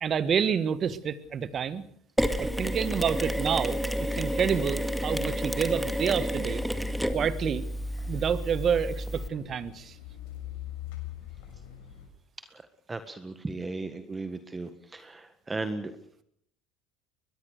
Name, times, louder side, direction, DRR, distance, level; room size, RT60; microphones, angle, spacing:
voice 1, 0.0-1.8 2.4-6.6 7.1-7.7 8.1-10.0, right 7 dB, 40° right, 15 dB, 1.6 m, -28 dB
Mechanisms, 2.2-9.3, equal, ahead, 2.0 m, -30 dB
sound 1, 4.1-12.1, left 12 dB, 80° left, 6.9 m, -45 dB
voice 2, 12.9-15.9, right 3 dB, 20° right, 10 dB, 1.6 m, -36 dB
22.5 x 21.0 x 6.7 m, 0.69 s
supercardioid pair, 95°, 0 cm